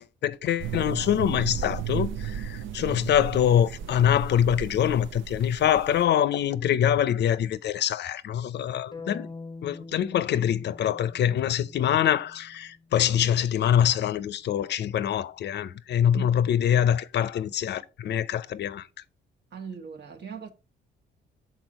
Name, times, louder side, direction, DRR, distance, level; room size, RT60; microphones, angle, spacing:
voice 1, 0.2-9.3 9.6-18.9, left 10 dB, 60° left, 0.6 m, -24 dB
sound 1, 0.6-6.1, right 9 dB, 75° right, 0.5 m, -35 dB
sound 2, 8.9-13.0, left 3 dB, 20° left, 0.7 m, -44 dB
voice 2, 19.5-20.5, right 7 dB, 60° right, 1.3 m, -39 dB
6.3 x 4.1 x 4.1 m
cardioid pair, 90°, 20 cm